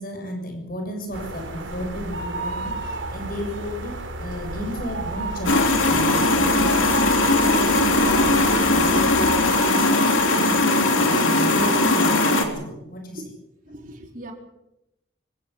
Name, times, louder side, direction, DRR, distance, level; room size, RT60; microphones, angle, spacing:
voice 1, 0.0-5.6 5.9-13.2, equal, 45° left, 4 dB, 7.0 m, -33 dB
sound 1, 1.1-9.6, right 2 dB, 70° right, 3.5 m, -32 dB
sound 2, 5.5-12.5, left 2 dB, 75° left, 3.5 m, -19 dB
voice 2, 13.7-14.3, right 1 dB, 40° right, 2 dB, 4.3 m, -39 dB
25.0 x 16.0 x 8.2 m, 0.87 s
head